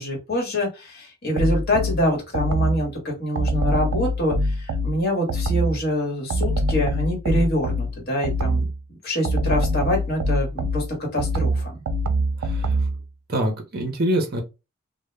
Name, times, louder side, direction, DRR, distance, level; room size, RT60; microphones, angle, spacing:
voice 1, 0.0-8.7 9.0-11.7, equal, 45° left, 1.1 m, -25 dB
sound 1, 1.4-2.9 3.4-5.8 6.3-8.8 9.2-13.0, equal, 85° right, 0.4 m, -24 dB
voice 2, 12.4-12.8 13.3-14.4, right 1 dB, 45° right, 0.6 m, -25 dB
2.1 x 2.0 x 3.1 m
head